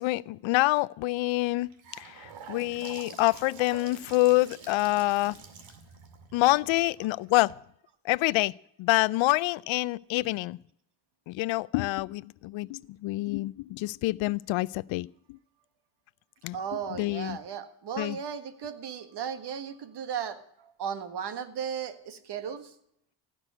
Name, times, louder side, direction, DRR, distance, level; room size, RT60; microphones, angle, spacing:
voice 1, 0.0-1.7 2.0-5.4 6.3-7.5 8.0-8.5 8.8-10.6 11.3-15.1 16.4-16.6 17.0-17.4 18.0-18.2, left 20 dB, 75° left, 22 dB, 0.5 m, -26 dB
Gurgling / Sink (filling or washing) / Bathtub (filling or washing), 1.4-7.5, right 6 dB, 75° right, 2.3 m, -47 dB
voice 2, 16.5-22.7, right 7 dB, 55° right, 11 dB, 1.6 m, -36 dB
16.0 x 6.3 x 10.0 m, 0.71 s
cardioid pair, 85°, 47 cm